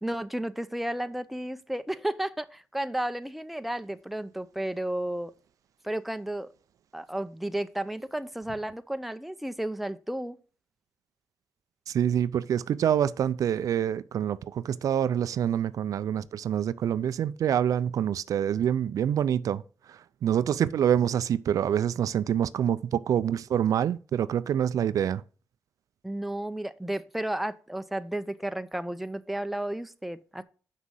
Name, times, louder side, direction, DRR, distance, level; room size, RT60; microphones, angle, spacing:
voice 1, 0.0-5.3 5.8-6.5 6.9-10.4 26.0-30.4, right 1 dB, ahead, 0.6 m, -33 dB
voice 2, 11.9-19.6 19.9-25.2, right 9 dB, 70° right, 0.4 m, -26 dB
6.3 x 6.0 x 5.6 m
cardioid pair, 95°, 6 cm